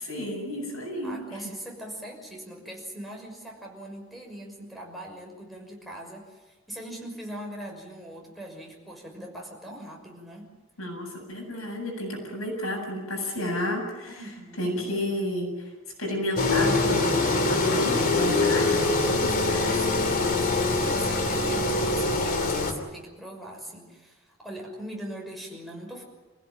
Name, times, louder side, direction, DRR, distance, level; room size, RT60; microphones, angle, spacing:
voice 1, 0.0-1.4 10.8-14.3 14.6-15.7 16.0-19.8, left 1 dB, 80° left, 2 dB, 7.9 m, -31 dB
voice 2, 1.0-10.5 14.1-14.9 19.2-26.0, right 1 dB, ahead, -1 dB, 6.1 m, -41 dB
Engine, 16.4-22.7, left 2 dB, 45° left, 2.9 m, -24 dB
27.5 x 16.5 x 9.1 m, 1.2 s
head